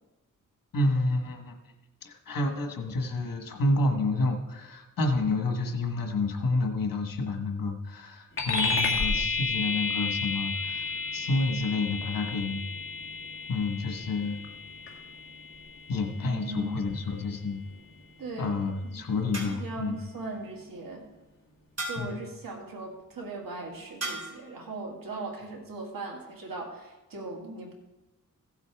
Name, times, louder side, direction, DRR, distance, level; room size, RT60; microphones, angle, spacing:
voice 1, 0.7-1.6 2.0-12.6 13.5-14.4 15.9-17.6 18.4-20.0 22.0-22.2, left 2 dB, 85° left, 4 dB, 1.6 m, -29 dB
sound 1, 8.4-18.2, left 4 dB, 40° left, 2.0 m, -32 dB
voice 2, 16.2-16.8 18.2-18.5 18.9-19.0 19.4-21.0 21.9-27.7, right 3 dB, 90° right, 0 dB, 2.3 m, -38 dB
sound 2, 17.1-17.7 19.3-19.9 21.8-22.3 24.0-24.5, right 2 dB, 50° right, 3.8 m, -38 dB
16.0 x 8.2 x 3.6 m, 1.0 s
wide cardioid pair, 85°, 33 cm